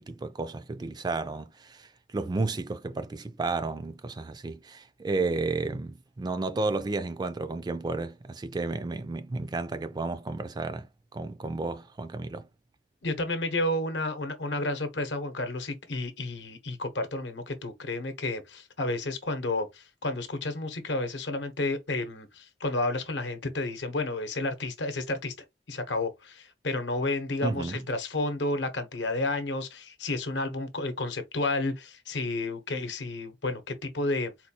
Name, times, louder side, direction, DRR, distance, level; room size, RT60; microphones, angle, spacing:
voice 1, 0.0-12.5 27.4-27.8, right 3 dB, 25° right, 0.3 m, -32 dB
voice 2, 13.0-25.3 25.7-34.3, left 2 dB, 70° left, 0.8 m, -31 dB
4.1 x 2.3 x 2.8 m
head